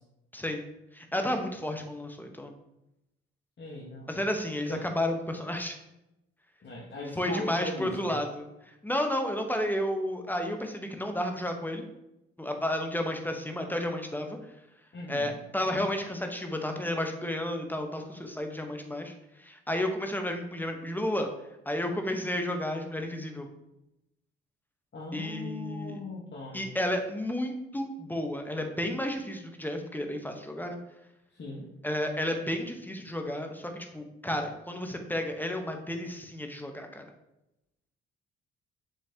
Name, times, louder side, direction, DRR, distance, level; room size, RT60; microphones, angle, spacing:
voice 1, 0.9-2.5 4.1-5.8 7.2-8.5 8.8-11.8 12.4-14.4 15.1-19.1 19.4-21.3 21.6-23.5 25.1-26.0 26.5-30.8 31.8-37.0, left 1 dB, 5° left, 4 dB, 1.1 m, -32 dB
voice 2, 3.6-4.2 4.7-4.9 6.6-8.2 14.9-15.4 24.9-26.6 31.3-31.7, left 2 dB, 35° left, -4 dB, 1.6 m, -39 dB
6.8 x 5.7 x 2.9 m, 0.88 s
hypercardioid pair, 50°, 31 cm